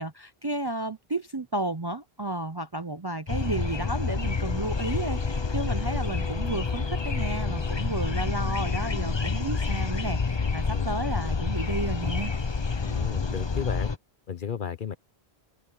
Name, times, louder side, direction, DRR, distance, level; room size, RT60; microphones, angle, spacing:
voice 1, 0.0-12.3, right 2 dB, 30° right, 0.5 m, -32 dB
sound 1, 3.3-14.0, left 4 dB, 30° left, 0.8 m, -28 dB
Brass instrument, 3.7-7.9, equal, ahead, 1.6 m, -46 dB
voice 2, 12.8-13.9 14.3-15.0, left 8 dB, 55° left, 0.9 m, -33 dB
omnidirectional pair, 1.1 m